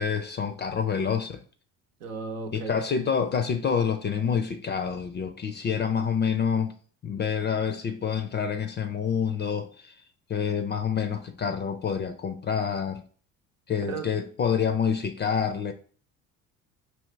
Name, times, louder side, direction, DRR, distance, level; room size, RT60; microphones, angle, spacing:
voice 1, 0.0-1.4 2.5-6.7 7.0-9.9 10.3-13.0 13.7-15.7, left 7 dB, 25° left, 0.4 m, -27 dB
voice 2, 2.0-2.8 13.9-14.1, right 4 dB, 85° right, 0.8 m, -35 dB
4.7 x 2.9 x 3.1 m
hypercardioid pair, 70°, 40 cm